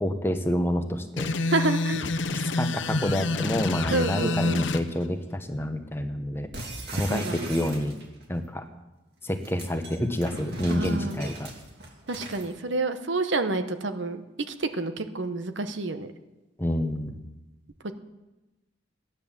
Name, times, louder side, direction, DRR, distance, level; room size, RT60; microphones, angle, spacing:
voice 1, 0.0-1.3 2.6-6.5 6.9-8.0 8.3-8.6 9.2-11.5 16.6-17.2, left 1 dB, 10° left, 6 dB, 1.0 m, -28 dB
sound 1, 1.2-4.8, left 3 dB, 80° left, 0.8 m, -28 dB
voice 2, 1.5-2.1 3.9-4.6 7.1-7.5 10.7-11.2 12.1-16.1 17.8-17.9, right 3 dB, 75° right, 9 dB, 1.0 m, -29 dB
sound 2, 6.5-8.2 9.2-12.5, right 2 dB, 60° right, 2.6 m, -39 dB
14.5 x 10.0 x 7.3 m, 1.1 s
head